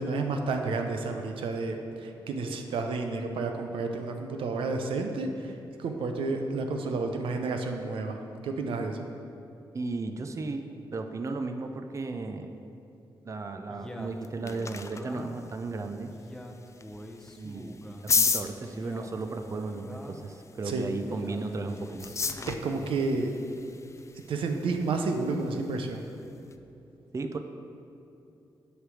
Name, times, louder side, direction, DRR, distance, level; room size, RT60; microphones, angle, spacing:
voice 1, 0.0-5.5 5.8-9.1 20.7-20.8 22.4-23.3 24.3-26.0, right 3 dB, 80° right, 4 dB, 0.6 m, -31 dB
voice 2, 9.7-10.6 10.9-12.5 13.2-16.1 17.4-22.1 27.1-27.4, right 3 dB, 35° right, 6 dB, 0.5 m, -35 dB
Male speech man speaking, 13.7-15.5 16.1-18.1 18.6-20.3 21.0-23.0, equal, 5° left, 0.7 m, -44 dB
sound 1, 14.0-26.6, left 4 dB, 35° left, 0.4 m, -36 dB
7.9 x 3.3 x 6.3 m, 2.8 s
cardioid pair, 55°, 9 cm